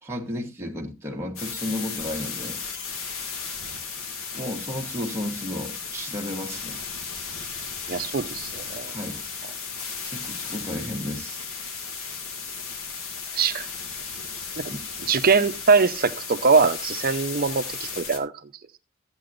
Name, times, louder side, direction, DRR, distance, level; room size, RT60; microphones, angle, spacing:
voice 1, 0.0-2.6 4.3-6.8 8.8-9.2 10.0-11.4 14.7-14.8, left 1 dB, 10° right, 1.3 m, -33 dB
sound 1, 1.4-18.2, left 5 dB, 90° left, 1.7 m, -35 dB
voice 2, 7.9-8.9 13.4-13.7 14.6-14.7 15.1-18.3, right 5 dB, 45° right, 0.7 m, -22 dB
14.0 x 8.7 x 2.5 m
head